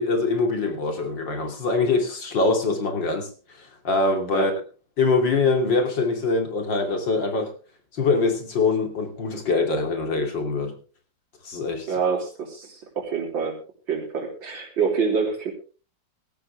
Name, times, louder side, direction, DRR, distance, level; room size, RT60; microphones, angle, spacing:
voice 1, 0.0-4.5 5.0-7.5 7.9-10.8 11.4-11.9, left 3 dB, 75° left, 3.5 m, -23 dB
voice 2, 11.9-13.6 13.9-15.5, right 5 dB, 85° right, 4.3 m, -26 dB
17.5 x 14.0 x 3.5 m
omnidirectional pair, 2.0 m